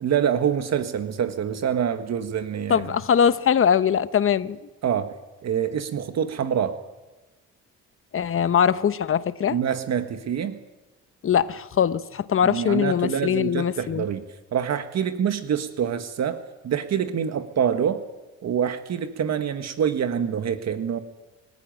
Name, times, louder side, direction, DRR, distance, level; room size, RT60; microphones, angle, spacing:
voice 1, 0.0-2.9 4.8-5.2 5.4-6.8 9.5-10.6 12.4-14.2 14.5-18.0 18.4-21.0, right 8 dB, 60° right, 1.6 m, -26 dB
voice 2, 2.7-4.6 8.1-9.6 11.2-14.0, left 8 dB, 45° left, 1.0 m, -22 dB
24.0 x 14.5 x 9.2 m
cardioid pair, 90°, 30 cm